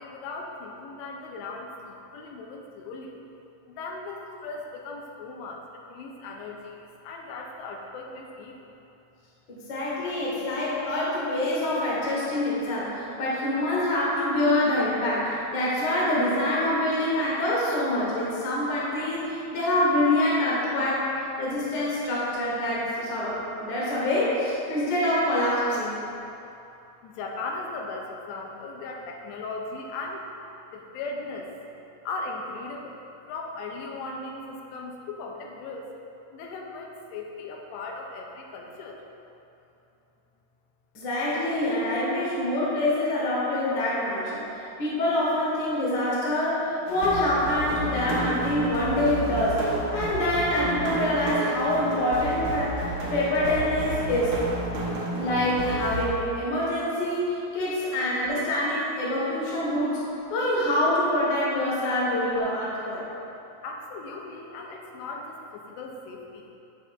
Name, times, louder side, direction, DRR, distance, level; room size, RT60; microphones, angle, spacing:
voice 1, 0.0-3.1 3.7-5.6 5.9-8.5 27.0-30.2 30.7-31.5 32.1-33.0 33.3-35.9 36.3-39.0 63.6-65.4 65.8-66.4, left 3 dB, 90° left, 1 dB, 2.8 m, -37 dB
voice 2, 9.5-21.1 21.4-25.9 40.9-44.4 44.8-49.6 49.9-52.8 53.1-54.4 55.2-60.0 60.3-63.0, left 1 dB, 50° left, -6 dB, 1.3 m, -25 dB
sound 1, 46.9-56.1, right 1 dB, 70° right, 1.8 m, -31 dB
9.2 x 7.4 x 2.6 m, 2.9 s
omnidirectional pair, 4.8 m